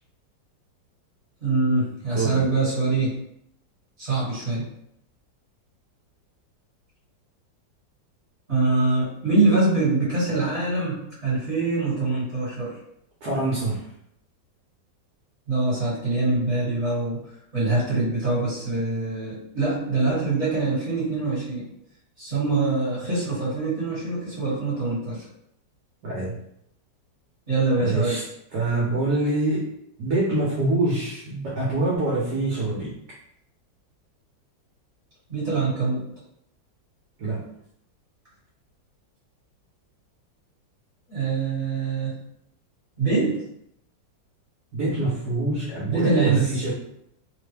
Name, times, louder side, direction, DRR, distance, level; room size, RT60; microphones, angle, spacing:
voice 1, 1.4-3.1 4.0-4.6 8.5-12.8 15.5-17.2 17.5-21.7 22.2-25.2 27.5-28.2 35.3-36.1 41.1-42.1 43.0-43.4 45.9-46.5, right 3 dB, 40° right, -9 dB, 1.7 m, -24 dB
voice 2, 2.1-2.4 13.2-13.8 26.0-26.3 27.8-28.2 28.5-29.7 30.0-32.9 37.2-37.4 44.7-46.7, right 2 dB, 65° right, -5 dB, 1.2 m, -25 dB
3.4 x 2.2 x 3.3 m, 0.74 s
omnidirectional pair, 2.0 m